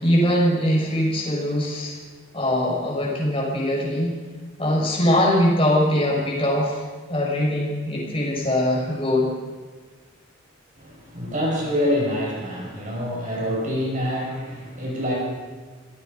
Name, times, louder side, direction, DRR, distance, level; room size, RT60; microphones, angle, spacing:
voice 1, 0.0-2.0 2.3-4.2 4.6-6.8 7.1-9.3, left 1 dB, 25° left, -3 dB, 5.9 m, -22 dB
voice 2, 10.8-15.1, equal, 35° right, -2 dB, 6.1 m, -26 dB
26.5 x 18.5 x 5.4 m, 1.4 s
head